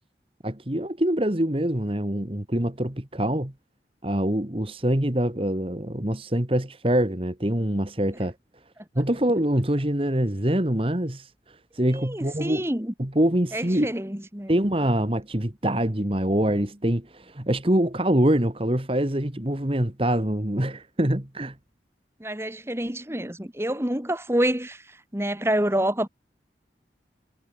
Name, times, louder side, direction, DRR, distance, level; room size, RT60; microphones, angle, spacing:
voice 1, 0.4-3.5 4.0-8.3 9.0-11.3 11.8-12.7 13.0-13.9 14.5-21.5, right 1 dB, 30° right, 1.8 m, -24 dB
voice 2, 11.9-12.9 13.5-14.5 22.2-26.1, right 1 dB, 15° right, 2.0 m, -27 dB
head